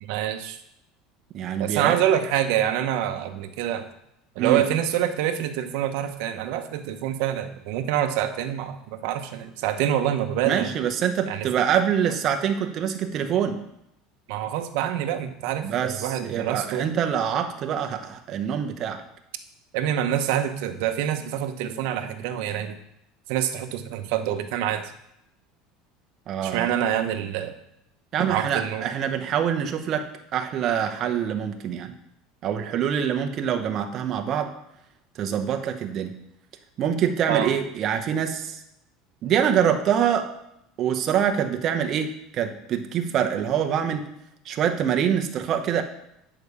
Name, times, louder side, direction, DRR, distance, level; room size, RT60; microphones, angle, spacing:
voice 1, 0.0-0.6 1.6-3.9 4.4-10.7 11.3-11.5 14.3-16.9 19.7-22.8 23.3-24.8 26.4-27.6 28.3-28.8 37.3-37.5, right 10 dB, 65° right, 6 dB, 0.9 m, -26 dB
voice 2, 1.3-2.0 4.4-4.7 10.4-13.6 15.6-19.0 26.3-26.7 28.1-31.9 32.4-34.5 35.2-36.1 36.8-38.6 39.2-40.3 40.8-44.1 44.4-45.8, right 8 dB, 35° right, 5 dB, 0.9 m, -25 dB
9.1 x 4.8 x 6.8 m, 0.81 s
cardioid pair, 160°, 0 cm